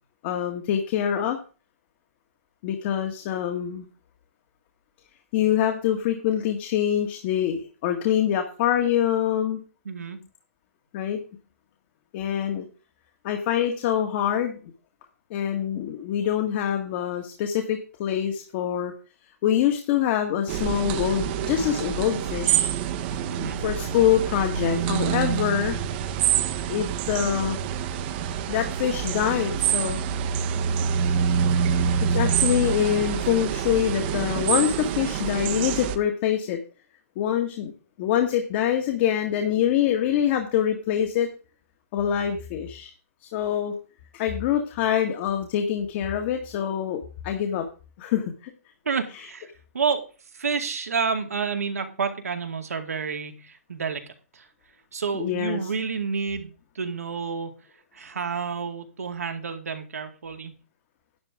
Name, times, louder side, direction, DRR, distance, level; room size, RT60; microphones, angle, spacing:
voice 1, 0.2-1.4 2.6-3.9 5.3-9.6 10.9-11.2 12.1-12.7 13.2-14.6 15.3-18.9 19.4-22.7 23.4-25.8 26.7-27.6 28.5-30.0 32.1-36.6 37.2-37.7 38.0-41.3 41.9-42.9 43.2-43.8 44.1-47.7 48.0-48.2 55.1-55.6, left 10 dB, 45° left, 4 dB, 1.9 m, -25 dB
voice 2, 9.8-10.2 23.3-23.6 48.9-49.5 49.7-50.1 50.3-54.5 54.9-57.5 57.9-60.5, right 5 dB, 85° right, 5 dB, 2.3 m, -29 dB
sound 1, 20.5-36.0, right 8 dB, 40° right, 1.1 m, -26 dB
11.5 x 9.9 x 3.7 m, 0.35 s
hypercardioid pair, 135°, 8 cm